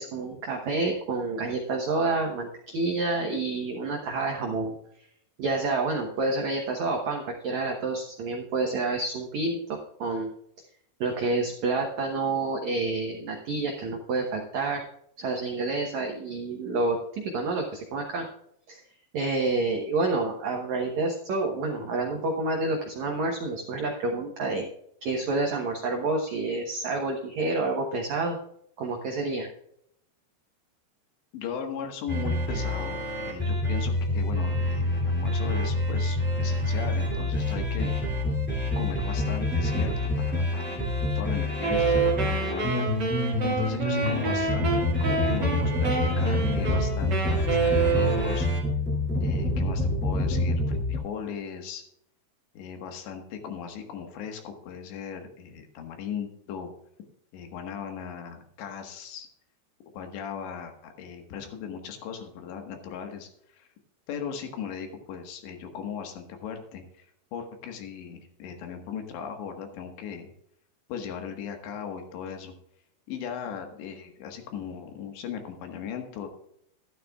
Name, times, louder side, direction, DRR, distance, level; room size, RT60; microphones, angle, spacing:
voice 1, 0.0-4.7 5.4-10.3 11.0-14.8 15.2-18.2 18.7-18.8 19.1-24.6 25.0-28.4 28.8-29.5, right 3 dB, 75° right, 1 dB, 1.6 m, -28 dB
voice 2, 31.3-33.0 33.3-37.9 38.8-40.9 41.2-42.9 43.4-48.5 49.2-51.8 52.6-56.7 57.3-59.3 59.9-63.7 64.1-67.1 67.3-70.3 70.9-72.5 73.1-76.3, left 7 dB, 80° left, 4 dB, 3.7 m, -37 dB
sound 1, 32.1-51.0, left 1 dB, 5° left, 1.0 m, -27 dB
Wind instrument woodwind instrument, 41.6-48.5, right 5 dB, 50° right, 1.2 m, -28 dB
12.5 x 12.0 x 2.4 m, 0.72 s
omnidirectional pair, 5.0 m